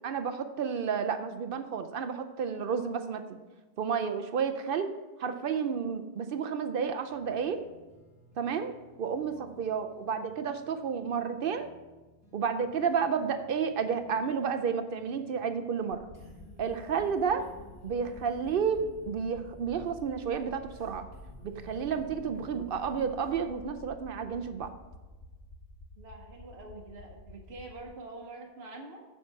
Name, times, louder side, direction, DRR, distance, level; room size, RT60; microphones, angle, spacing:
voice 1, 0.0-3.4 3.8-4.9 5.2-7.6 8.4-11.7 12.3-16.0 16.6-17.5 17.8-21.1 21.4-24.7, right 6 dB, 65° right, 9 dB, 0.7 m, -31 dB
sound 1, 7.1-23.4, left 1 dB, 15° left, 2.1 m, -56 dB
sound 2, 15.9-27.8, left 1 dB, 80° left, 1.2 m, -50 dB
voice 2, 26.0-29.0, right 2 dB, 85° right, 1 dB, 1.2 m, -46 dB
7.3 x 7.2 x 4.5 m, 1.2 s
omnidirectional pair, 1.0 m